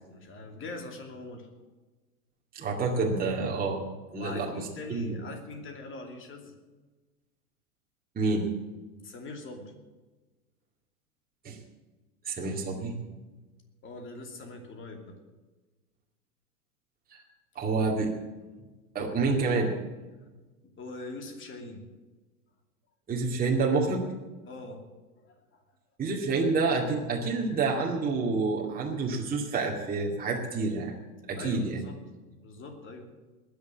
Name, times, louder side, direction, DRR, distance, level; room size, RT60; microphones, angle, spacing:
voice 1, 0.1-1.5 4.2-6.5 9.0-9.7 13.8-15.2 20.6-21.8 24.5-24.8 25.2-25.4 31.4-32.0 32.4-33.1, left 2 dB, 25° left, 4 dB, 2.8 m, -42 dB
voice 2, 2.5-3.8 4.1-5.2 8.2-8.4 11.4-11.6 12.2-12.9 17.1-17.2 17.6-18.1 18.9-19.7 23.1-24.0 26.0-30.9 31.3-31.8, right 3 dB, 20° right, -2 dB, 2.3 m, -28 dB
20.5 x 6.9 x 7.5 m, 1.2 s
figure-of-eight pair, 95°, 45 cm